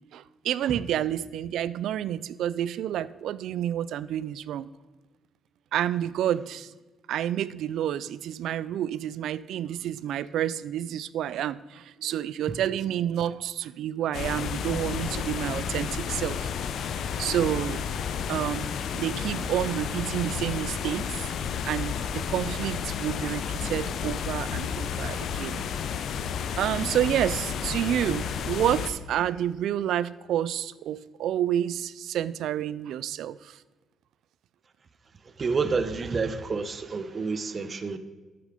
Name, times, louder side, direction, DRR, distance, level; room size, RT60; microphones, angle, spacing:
voice 1, 0.1-4.7 5.7-6.7 7.1-16.5 17.1-25.6 26.6-33.6, right 11 dB, 80° right, 18 dB, 0.4 m, -29 dB
sound 1, 14.1-28.9, left 7 dB, 70° left, 0.8 m, -31 dB
voice 2, 35.4-38.0, right 4 dB, 40° right, 12 dB, 0.9 m, -29 dB
12.0 x 8.4 x 5.1 m, 1.2 s
cardioid pair, 90°, 0 cm